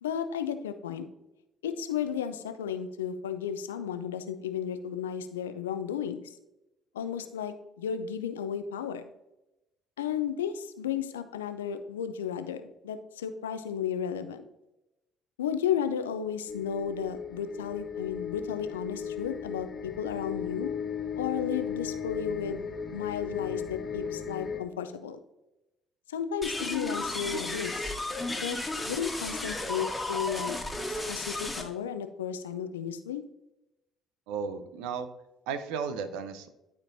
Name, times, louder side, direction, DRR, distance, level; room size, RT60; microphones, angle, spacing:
voice 1, 0.0-1.1 1.6-6.4 6.9-9.0 10.0-14.4 15.4-20.7 21.2-25.2 26.1-27.9 28.4-28.6 28.8-30.6 30.9-33.2, left 8 dB, 85° left, 10 dB, 0.4 m, -33 dB
sound 1, 16.5-24.6, left 7 dB, 40° left, 1.4 m, -36 dB
sound 2, 26.4-31.6, left 2 dB, 15° left, 1.5 m, -33 dB
voice 2, 34.3-35.1 35.5-36.5, right 6 dB, 75° right, 11 dB, 0.6 m, -34 dB
11.5 x 4.4 x 2.6 m, 0.94 s
hypercardioid pair, 50°, 0 cm